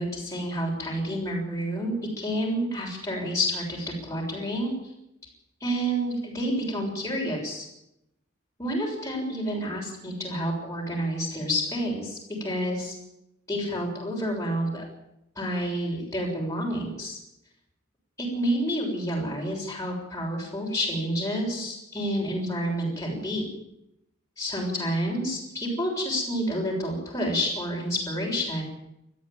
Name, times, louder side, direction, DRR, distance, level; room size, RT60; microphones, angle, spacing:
voice 1, 0.0-4.7 5.6-7.6 8.6-12.9 13.5-14.8 15.3-17.2 18.2-23.5 24.4-28.6, equal, 15° left, -4 dB, 6.9 m, -29 dB
21.5 x 14.5 x 9.0 m, 0.81 s
head